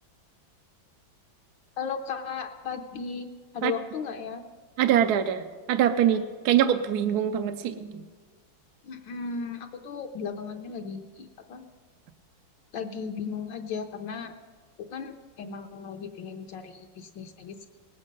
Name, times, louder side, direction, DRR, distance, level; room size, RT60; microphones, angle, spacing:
voice 1, 1.8-3.3 3.5-4.4 8.8-11.6 12.7-14.3 14.8-17.7, left 6 dB, 70° left, 4 dB, 1.4 m, -36 dB
voice 2, 4.8-8.0, right 10 dB, 70° right, 8 dB, 1.0 m, -24 dB
19.0 x 8.5 x 5.3 m, 1.4 s
omnidirectional pair, 2.2 m